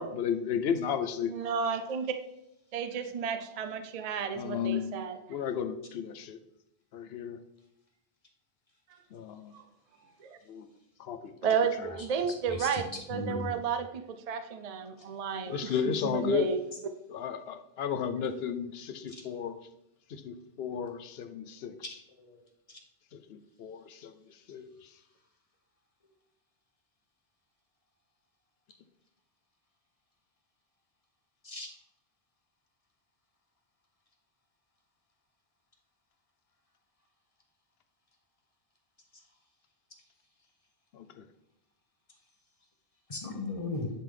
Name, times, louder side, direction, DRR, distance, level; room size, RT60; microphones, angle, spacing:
voice 1, 0.0-1.3 4.3-5.0 5.3-6.4 6.9-7.4 9.1-9.5 10.5-10.6 11.0-11.3 15.5-16.5 17.1-19.5 20.1-21.7 23.3-24.1 24.5-24.7 40.9-41.0, left 7 dB, 75° left, 9 dB, 0.9 m, -33 dB
voice 2, 1.3-2.1 2.7-5.2 11.4-12.8 13.1-14.0 14.3-15.7 16.1-16.6, right 6 dB, 45° right, 8 dB, 0.5 m, -32 dB
voice 3, 11.8-13.5 16.9-17.0 19.1-19.2 21.8-22.4 22.7-22.8 31.4-31.7 43.1-43.9, left 2 dB, 35° left, 2 dB, 1.1 m, -38 dB
10.5 x 3.5 x 3.8 m, 0.84 s
omnidirectional pair, 1.1 m